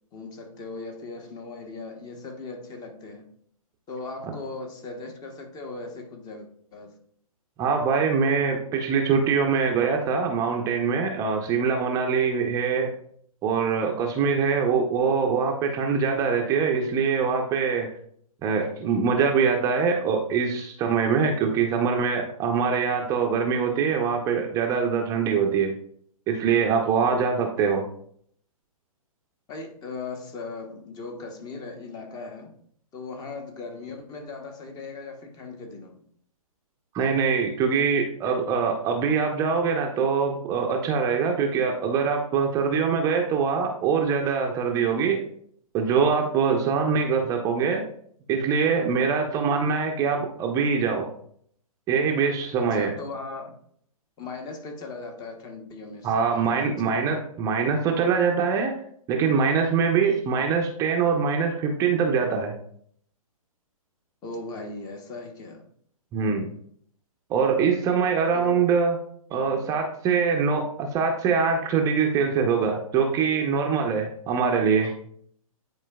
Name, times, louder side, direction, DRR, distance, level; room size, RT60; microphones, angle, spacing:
voice 1, 0.1-3.3 3.9-7.0 29.5-32.6 32.9-36.0 52.6-53.5 54.2-57.0 64.2-65.7 68.3-68.6 69.4-69.6, left 3 dB, 20° left, 0.9 m, -38 dB
voice 2, 7.6-12.9 13.4-17.9 18.4-25.7 26.3-27.9 36.9-45.2 45.7-47.8 48.3-51.1 51.9-52.9 56.0-58.8 59.1-62.5 66.1-66.5 67.3-69.0 69.3-74.9, right 5 dB, 20° right, 0.6 m, -23 dB
9.8 x 4.4 x 2.2 m
hypercardioid pair, 130°, 19 cm